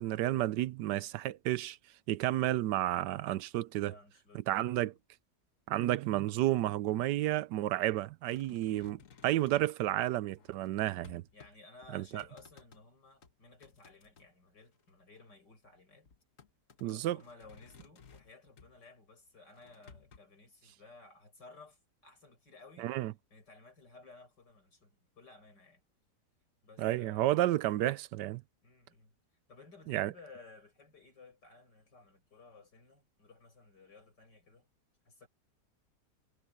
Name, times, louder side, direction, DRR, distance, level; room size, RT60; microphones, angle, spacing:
voice 1, 0.0-1.8 2.1-3.9 4.5-4.9 5.7-11.2 11.9-12.2 16.8-17.2 22.8-23.1 26.8-28.4 29.9-30.1, right 14 dB, 80° right, 1.2 m, -31 dB
voice 2, 3.9-5.0 11.3-16.1 16.8-22.9 23.3-25.8 26.6-27.6 28.6-29.1 29.5-34.7 35.0-35.3, left 3 dB, 80° left, 7.8 m, -57 dB
sound 1, 8.3-9.7 10.4-11.6 11.8-12.8 13.2-14.3 14.7-15.3 16.1-18.8 19.5-20.2, left 6 dB, 50° left, 1.5 m, -59 dB
omnidirectional pair, 1.8 m